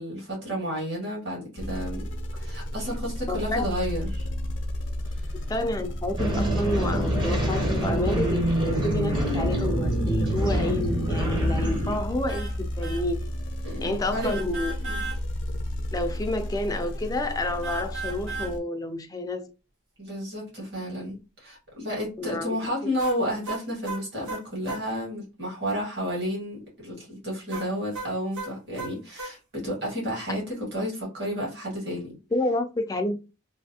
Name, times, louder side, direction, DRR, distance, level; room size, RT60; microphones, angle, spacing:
voice 1, 0.0-2.0 2.4-4.3 5.1-5.3 13.6-14.3 14.8-15.0 20.0-32.1, equal, 55° right, 2.0 m, -31 dB
sound 1, 1.6-18.6, left 1 dB, 70° left, 0.6 m, -32 dB
voice 2, 3.3-3.7 5.3-13.3 13.8-14.7 15.9-19.5 22.2-22.6 32.3-33.2, left 1 dB, 20° left, 0.4 m, -29 dB
sound 2, 6.2-12.0, right 1 dB, 25° right, 0.8 m, -26 dB
sound 3, 12.3-12.6 12.8-13.1 14.2-15.2 17.6-18.5 23.0-24.8 27.5-29.3, right 3 dB, 90° right, 1.3 m, -35 dB
3.2 x 2.6 x 2.8 m
head